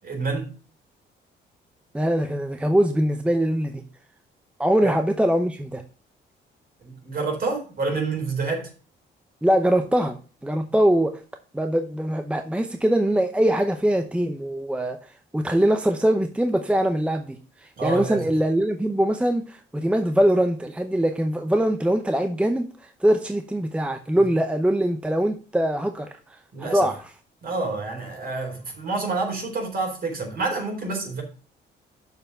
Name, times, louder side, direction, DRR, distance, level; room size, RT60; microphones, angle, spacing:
voice 1, 0.0-0.5 4.8-4.9 6.8-8.7 17.8-18.2 26.5-26.9 27.4-31.2, right 3 dB, 50° right, 4.1 m, -28 dB
voice 2, 1.9-3.8 4.6-5.8 9.4-11.2 11.5-27.1, right 1 dB, 5° right, 0.7 m, -23 dB
6.8 x 5.6 x 6.2 m
cardioid pair, 90°, 20 cm